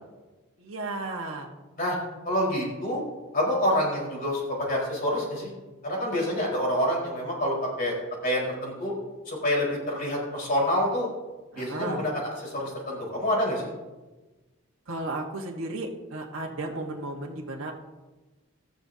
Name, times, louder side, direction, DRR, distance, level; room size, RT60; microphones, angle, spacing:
voice 1, 0.6-1.5 11.5-12.0 14.9-17.7, right 2 dB, 65° right, -1 dB, 1.5 m, -34 dB
voice 2, 2.2-3.0 3.3-5.5 5.8-8.0 8.2-8.9 9.3-11.1 11.6-13.7, left 1 dB, 40° left, -3 dB, 4.5 m, -27 dB
18.0 x 13.0 x 2.8 m, 1.2 s
head